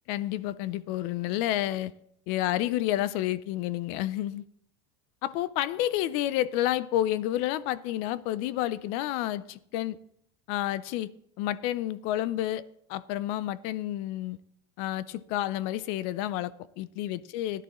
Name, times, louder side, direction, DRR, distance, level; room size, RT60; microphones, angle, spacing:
voice 1, 0.1-1.9 2.3-4.4 5.2-10.0 10.5-11.1 11.4-12.6 12.9-14.4 14.8-17.6, left 14 dB, 45° left, 0.4 m, -30 dB
16.0 x 11.0 x 3.0 m
supercardioid pair, 170°, 14 cm